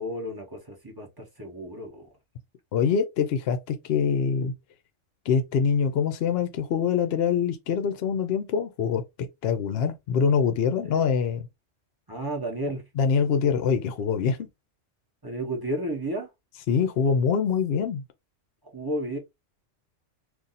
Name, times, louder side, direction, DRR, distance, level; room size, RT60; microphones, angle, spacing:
voice 1, 0.0-2.1 10.8-11.0 12.1-12.8 15.2-16.3 18.7-19.2, right 1 dB, 20° right, 0.9 m, -32 dB
voice 2, 2.7-4.5 5.3-9.0 9.4-11.4 13.0-14.4 16.7-18.0, left 6 dB, 65° left, 0.7 m, -24 dB
2.6 x 2.5 x 3.9 m
omnidirectional pair, 1.2 m